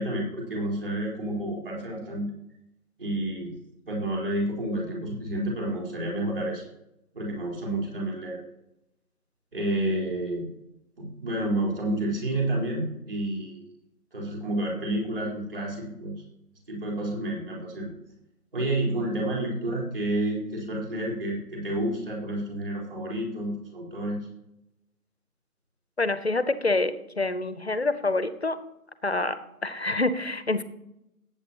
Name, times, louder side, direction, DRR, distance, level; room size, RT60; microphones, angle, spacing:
voice 1, 0.0-2.3 3.0-3.5 3.9-6.6 7.1-8.4 9.5-10.5 11.0-13.6 14.1-16.1 16.7-17.9 18.5-24.3, right 1 dB, 35° right, -2 dB, 4.2 m, -30 dB
voice 2, 26.0-28.6 29.0-29.4 29.6-30.6, left 2 dB, 45° left, 13 dB, 0.7 m, -26 dB
18.5 x 8.5 x 2.9 m, 0.85 s
figure-of-eight pair, 170°, 46 cm